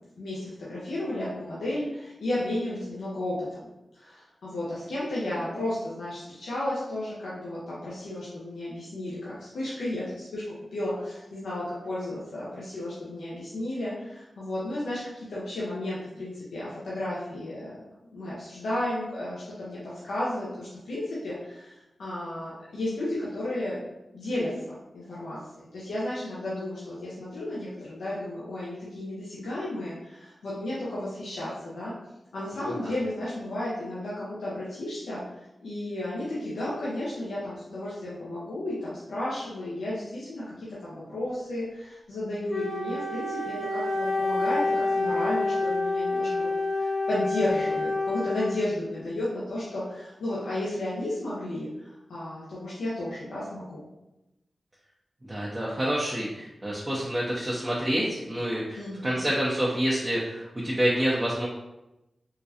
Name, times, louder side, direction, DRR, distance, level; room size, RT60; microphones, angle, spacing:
voice 1, 0.2-3.7 3.9-17.8 18.1-23.8 24.1-31.9 32.3-35.2 35.6-46.5 46.8-53.9 58.7-59.3, left 1 dB, 90° left, -8 dB, 0.7 m, -33 dB
Wind instrument woodwind instrument, 42.5-48.9, left 2 dB, 40° left, 0.8 m, -28 dB
voice 2, 55.2-61.5, right 1 dB, 30° right, -6 dB, 0.7 m, -28 dB
3.7 x 2.2 x 2.8 m, 0.93 s
cardioid pair, 45°, 0 cm